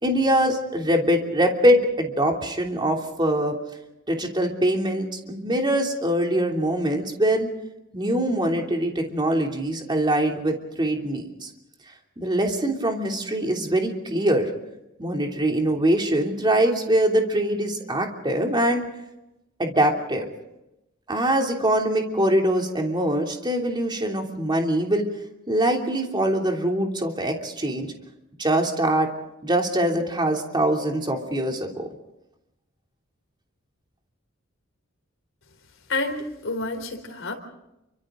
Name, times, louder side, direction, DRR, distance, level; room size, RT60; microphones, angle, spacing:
voice 1, 0.0-3.6 4.1-7.5 7.9-11.5 12.2-14.5 15.0-18.8 19.6-20.3 21.1-25.0 25.5-27.9 28.4-29.1 29.4-31.9, right 1 dB, 20° right, 2 dB, 3.1 m, -23 dB
voice 2, 35.9-37.3, left 3 dB, 65° left, 4 dB, 4.1 m, -29 dB
29.0 x 25.0 x 3.9 m, 0.90 s
head